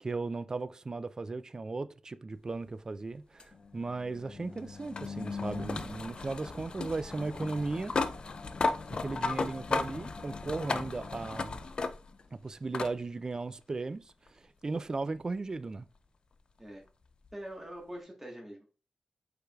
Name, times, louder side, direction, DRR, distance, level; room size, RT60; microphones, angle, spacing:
voice 1, 0.0-7.9 8.9-11.6 12.3-15.9, right 3 dB, 30° right, 0.3 m, -36 dB
sound 1, 3.4-12.3 12.7-12.9 14.3-14.4 17.3-17.4, left 4 dB, 45° left, 0.4 m, -35 dB
voice 2, 17.3-18.7, right 1 dB, 10° right, 1.3 m, -44 dB
4.9 x 4.7 x 2.3 m
wide cardioid pair, 110°, 2 cm